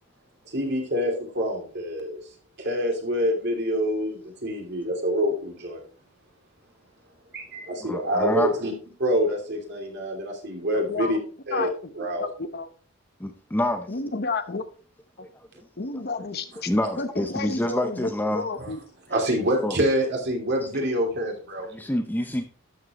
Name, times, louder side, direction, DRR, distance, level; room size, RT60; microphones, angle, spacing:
voice 1, 0.5-2.2 2.6-5.8 7.3-8.7 9.0-11.2 11.5-11.7 11.9-12.3 18.6-18.7 19.1-21.7, equal, 55° right, 2.8 m, -26 dB
voice 2, 7.8-8.5 13.2-13.9 15.3-15.5 16.7-18.5 19.6-19.8 21.7-22.5, left 1 dB, 10° left, 0.7 m, -27 dB
voice 3, 10.7-11.1 11.5-11.7 12.2-12.7 13.9-14.6 15.8-16.7 17.0-18.8, left 3 dB, 50° left, 0.9 m, -31 dB
12.5 x 7.3 x 3.0 m
head